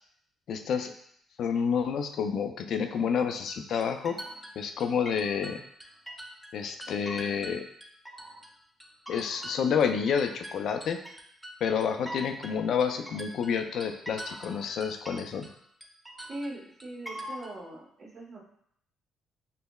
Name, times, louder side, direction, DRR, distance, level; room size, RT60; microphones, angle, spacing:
voice 1, 0.5-0.9 1.4-4.2 4.6-5.6 6.5-7.7 9.1-11.0 11.6-15.5, left 7 dB, 70° left, 6 dB, 0.3 m, -29 dB
sound 1, 3.5-6.5 6.8-8.5 8.8-15.6 15.8-17.5, equal, 5° right, 0.5 m, -43 dB
voice 2, 16.3-18.4, right 1 dB, 50° right, -4 dB, 1.2 m, -40 dB
5.4 x 2.0 x 2.2 m, 0.68 s
cardioid pair, 90°, 0 cm